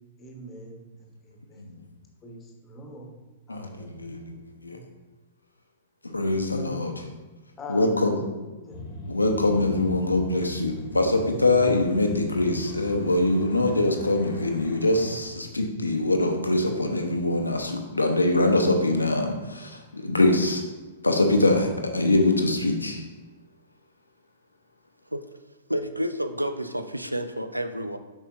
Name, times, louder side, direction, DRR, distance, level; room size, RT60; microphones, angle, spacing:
voice 1, 0.2-1.6 2.2-3.1 3.5-4.2 4.7-4.8 7.6-8.8, left 1 dB, 20° left, 1 dB, 1.2 m, -43 dB
voice 2, 3.5-4.4 4.6-4.8 6.0-7.1 7.7-8.2 9.1-20.6 21.0-23.0, left 2 dB, 80° left, 4 dB, 0.7 m, -23 dB
sound 1, 8.7-16.8, left 2 dB, 35° left, 1.1 m, -40 dB
voice 3, 25.7-28.0, equal, 90° right, 9 dB, 0.4 m, -30 dB
7.1 x 5.4 x 2.6 m, 1.2 s
figure-of-eight pair, 110°, 0 cm